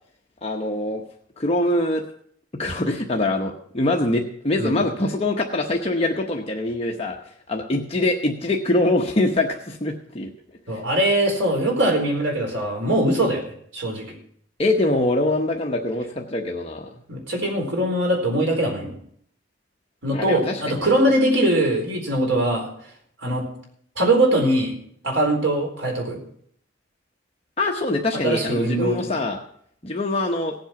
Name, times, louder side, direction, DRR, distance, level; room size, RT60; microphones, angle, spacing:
voice 1, 0.4-1.0 1.4-2.0 2.6-10.3 10.7-10.8 14.6-17.0 20.1-20.9 27.6-29.4 29.8-30.5, left 2 dB, 30° left, 0 dB, 1.0 m, -24 dB
voice 2, 10.7-13.4 13.7-14.1 17.1-19.0 20.0-22.7 23.2-23.4 24.0-24.7 25.0-26.2 28.2-29.1, right 1 dB, 80° right, 1 dB, 4.2 m, -21 dB
17.5 x 7.9 x 5.9 m, 0.65 s
head